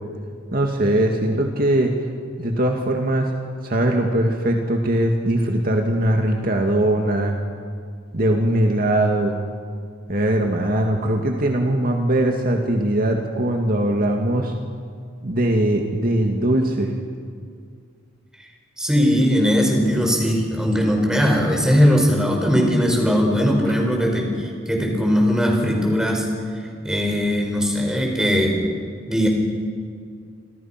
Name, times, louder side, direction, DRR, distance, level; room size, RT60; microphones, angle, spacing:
voice 1, 0.5-1.9 2.4-3.3 3.6-7.4 8.1-9.4 10.1-14.5 15.2-16.9, right 1 dB, 45° right, 2 dB, 2.1 m, -20 dB
voice 2, 18.8-26.3 26.8-28.6 29.1-29.3, equal, 5° right, 0 dB, 5.4 m, -19 dB
29.0 x 27.0 x 6.0 m, 2.1 s
head